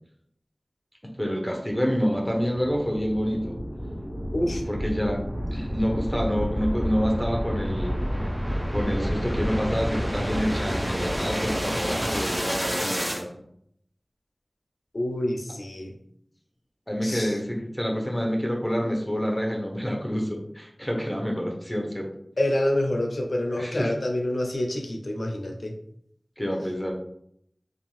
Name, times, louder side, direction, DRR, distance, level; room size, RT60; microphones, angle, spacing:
voice 1, 1.2-3.5 4.7-5.2 5.5-7.9 8.7-13.3 16.9-22.1 23.5-23.9 26.4-26.9, equal, 10° left, -1 dB, 0.7 m, -27 dB
sound 1, 1.7-13.2, equal, 30° right, 0.6 m, -29 dB
voice 2, 4.3-4.6 14.9-15.9 17.0-17.4 22.4-25.8, left 1 dB, 75° left, 2 dB, 0.4 m, -27 dB
2.6 x 2.3 x 3.0 m, 0.70 s
wide cardioid pair, 45°, 0 cm